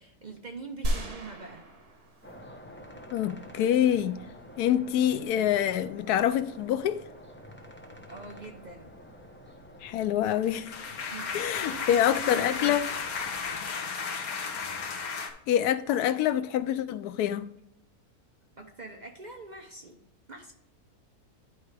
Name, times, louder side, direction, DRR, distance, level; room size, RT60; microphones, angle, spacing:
voice 1, 0.0-1.7 8.1-8.9 10.9-13.0 18.6-20.0 20.3-20.5, right 3 dB, 40° right, 0.7 m, -44 dB
sound 1, 0.8-2.8 3.1-3.2, right 1 dB, 85° right, 1.9 m, -34 dB
sound 2, 2.2-13.6, equal, 10° left, 0.7 m, -49 dB
voice 2, 3.1-4.1 4.6-7.0 9.8-10.8 11.3-12.9 15.5-17.5, left 10 dB, 90° left, 1.1 m, -26 dB
sound 3, 10.3-15.3, left 5 dB, 75° left, 1.5 m, -34 dB
11.0 x 4.7 x 3.3 m
omnidirectional pair, 1.6 m